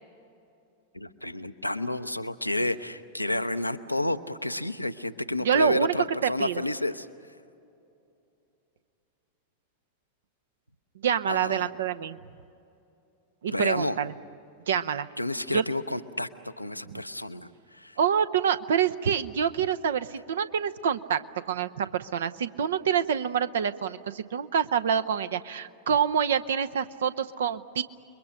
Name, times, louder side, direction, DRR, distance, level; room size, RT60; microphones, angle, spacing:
voice 1, 0.9-7.1 11.3-11.7 13.5-14.0 15.2-18.0, left 1 dB, 85° left, 11 dB, 0.7 m, -30 dB
voice 2, 5.4-5.9 6.2-6.6 11.0-12.2 13.4-14.1 14.7-15.1 15.5-15.6 16.9-17.0 18.0-27.8, right 8 dB, 60° right, 13 dB, 0.7 m, -26 dB
29.5 x 22.0 x 6.6 m, 2.7 s
figure-of-eight pair, 90°, 0 cm